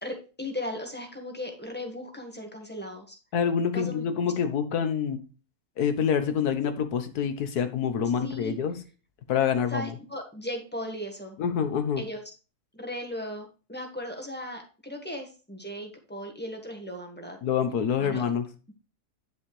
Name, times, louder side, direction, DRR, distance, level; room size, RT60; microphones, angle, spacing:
voice 1, 0.0-3.2 3.7-4.0 8.2-8.5 9.7-11.4 12.0-12.3 12.8-17.4 18.0-18.2, left 1 dB, 5° left, 1.6 m, -37 dB
voice 2, 3.3-5.2 5.8-8.8 9.3-9.9 11.4-12.0 17.4-18.5, left 7 dB, 85° left, 1.6 m, -26 dB
10.0 x 6.4 x 3.2 m
omnidirectional pair, 1.6 m